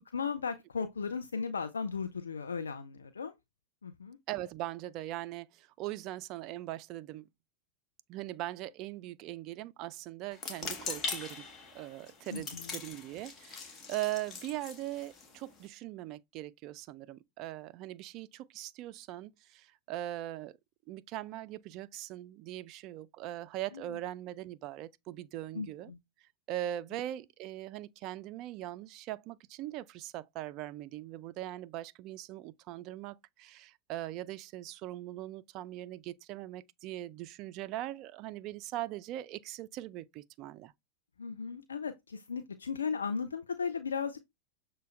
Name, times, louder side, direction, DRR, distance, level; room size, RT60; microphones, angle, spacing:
voice 1, 0.1-3.3 3.8-4.2 12.3-12.8 23.7-24.0 25.5-26.0 41.2-44.2, left 5 dB, 70° left, 0.5 m, -36 dB
voice 2, 4.3-7.3 8.1-11.5 11.7-20.6 20.9-25.9 26.5-40.7, right 14 dB, 40° right, 0.3 m, -40 dB
sound 1, 10.3-15.7, left 4 dB, 30° left, 0.8 m, -42 dB
6.6 x 2.2 x 3.2 m
figure-of-eight pair, 90°, 0 cm